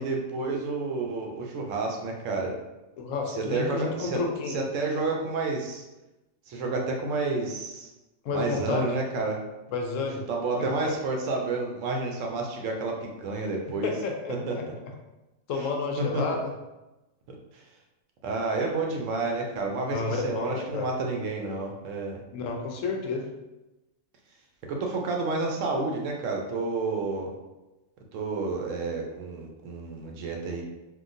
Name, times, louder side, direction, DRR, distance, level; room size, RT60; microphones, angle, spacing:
voice 1, 0.0-2.5 3.3-4.2 4.5-5.8 6.5-7.9 8.3-9.4 10.3-13.9 14.3-14.5 15.5-15.7 16.0-16.2 17.5-17.6 18.2-22.2 24.7-27.3 28.1-30.6, right 3 dB, 75° right, 1 dB, 0.9 m, -30 dB
voice 2, 3.0-4.6 8.2-8.9 9.7-10.2 10.6-10.9 13.8-14.6 15.5-16.5 19.9-20.9 22.3-23.3, left 4 dB, 75° left, 2 dB, 0.9 m, -30 dB
3.7 x 2.5 x 2.5 m, 1.0 s
omnidirectional pair, 1.4 m